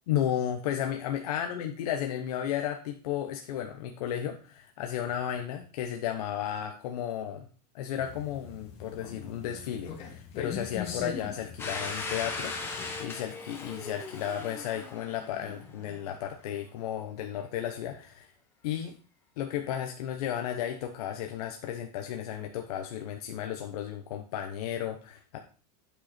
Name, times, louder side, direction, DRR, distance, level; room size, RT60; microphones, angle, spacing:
voice 1, 0.1-7.5 7.7-18.3 18.6-18.9 19.4-25.4, left 10 dB, 65° left, 4 dB, 1.0 m, -34 dB
sound 1, 8.0-13.0, left 7 dB, 30° left, 1.6 m, -41 dB
Domestic sounds home sounds, 11.6-16.2, left 3 dB, 10° left, 1.1 m, -38 dB
9.1 x 5.2 x 4.3 m, 0.38 s
supercardioid pair, 170°, 21 cm